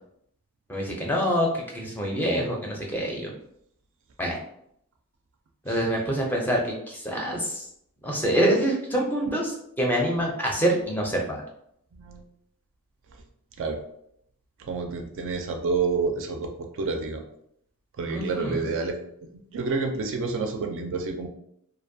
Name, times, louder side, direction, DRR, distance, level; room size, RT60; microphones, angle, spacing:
voice 1, 0.7-3.3 4.2-4.4 5.7-7.6 8.0-11.4 18.1-18.6, equal, 10° left, -1 dB, 0.5 m, -26 dB
voice 2, 11.9-12.2 13.6-13.8 14.6-17.2 18.0-19.0 19.5-21.3, right 4 dB, 60° right, 4 dB, 0.4 m, -29 dB
2.5 x 2.1 x 2.6 m, 0.72 s
head